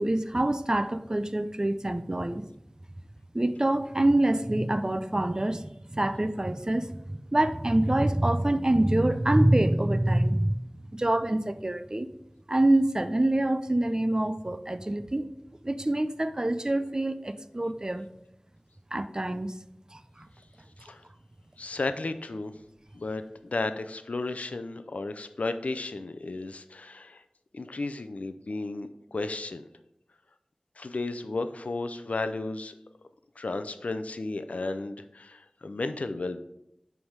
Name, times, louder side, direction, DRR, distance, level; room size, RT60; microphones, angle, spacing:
voice 1, 0.0-2.4 3.3-10.5 10.9-12.1 12.5-15.3 15.6-18.1 18.9-19.6 19.9-20.3, right 1 dB, 30° right, 11 dB, 0.5 m, -26 dB
voice 2, 21.6-22.5 22.9-27.2 27.5-29.7 30.8-32.7 33.4-36.4, left 3 dB, 85° left, 10 dB, 0.5 m, -33 dB
9.3 x 3.4 x 4.6 m, 0.83 s
wide cardioid pair, 50°, 2 cm